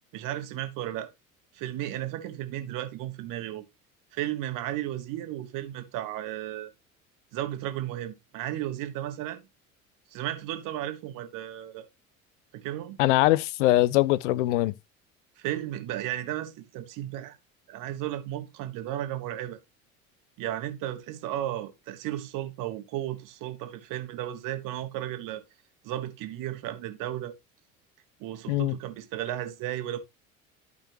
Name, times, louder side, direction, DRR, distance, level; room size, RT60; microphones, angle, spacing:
voice 1, 0.1-1.1 1.5-3.7 4.1-6.7 7.3-9.4 10.1-11.9 12.5-13.0 15.4-17.4 17.7-19.6 20.4-25.4 25.8-27.3 28.2-30.0, right 13 dB, 50° right, 1.4 m, -34 dB
voice 2, 13.0-14.7 28.5-28.8, left 16 dB, 60° left, 0.6 m, -22 dB
12.0 x 5.4 x 2.9 m
figure-of-eight pair, 65°, 41 cm